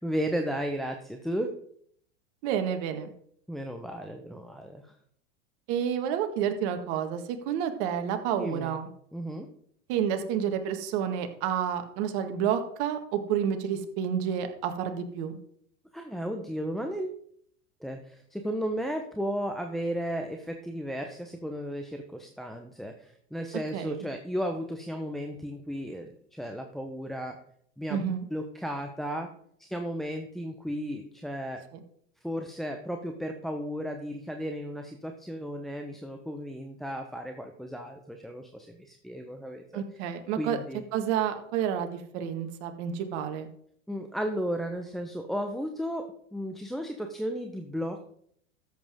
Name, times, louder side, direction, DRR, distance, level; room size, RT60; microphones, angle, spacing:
voice 1, 0.0-1.5 3.5-4.9 8.4-8.8 9.1-9.5 15.9-17.2 17.8-27.4 27.8-29.3 29.6-31.6 32.2-39.8 40.4-40.8 43.9-48.1, equal, ahead, 4 dB, 1.0 m, -34 dB
voice 2, 2.4-3.1 5.7-7.2 7.5-8.9 9.9-15.4 23.7-24.0 27.9-28.3 31.7-31.8 39.7-40.6 40.9-43.5, right 8 dB, 60° right, 7 dB, 1.9 m, -29 dB
13.5 x 7.9 x 3.7 m, 0.65 s
hypercardioid pair, 100°, 38 cm